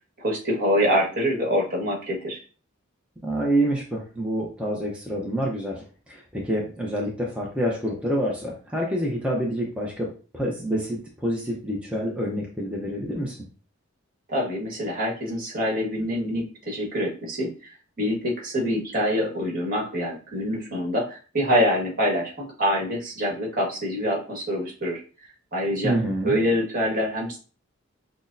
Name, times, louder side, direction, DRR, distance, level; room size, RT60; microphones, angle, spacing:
voice 1, 0.2-2.4 14.3-17.5 18.0-25.0 25.5-25.9 26.2-27.4, equal, 45° right, -2 dB, 1.4 m, -25 dB
voice 2, 3.2-13.4 25.8-26.3, right 1 dB, 5° right, -3 dB, 0.6 m, -27 dB
5.9 x 2.0 x 2.6 m, 0.37 s
head